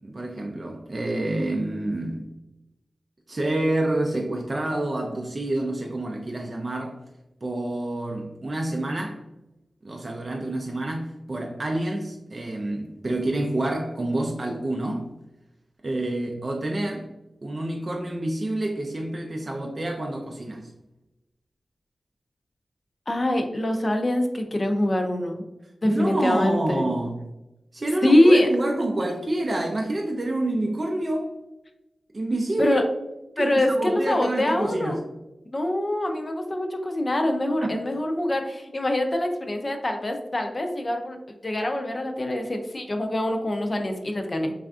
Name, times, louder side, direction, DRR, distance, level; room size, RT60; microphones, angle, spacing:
voice 1, 0.0-2.3 3.3-7.0 7.4-9.2 9.8-15.1 15.8-17.1 17.4-20.7 25.8-27.2 27.7-31.3 32.1-32.8 33.4-35.0 37.6-37.8, right 1 dB, 45° right, 0 dB, 0.4 m, -28 dB
voice 2, 23.1-25.4 25.8-26.9 28.0-28.5 32.6-32.8 33.4-35.0 35.5-41.2 41.4-44.5, left 1 dB, 40° left, 4 dB, 0.4 m, -24 dB
3.3 x 2.4 x 2.3 m, 0.96 s
cardioid pair, 55°, 0 cm